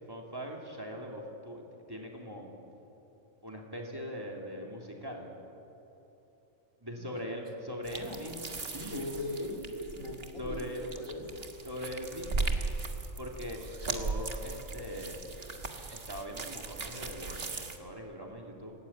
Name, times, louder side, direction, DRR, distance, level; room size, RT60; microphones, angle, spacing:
voice 1, 0.1-2.5 3.4-5.3 6.8-9.1 10.4-10.8 11.6-12.5 13.2-15.2 15.9-18.7, equal, 15° right, -1 dB, 3.2 m, -41 dB
sound 1, 7.8-17.8, right 3 dB, 50° right, 1.8 m, -38 dB
voice 2, 8.8-10.6 10.9-11.5, left 2 dB, 90° left, 1 dB, 3.6 m, -40 dB
27.5 x 17.5 x 8.9 m, 3.0 s
omnidirectional pair, 1.3 m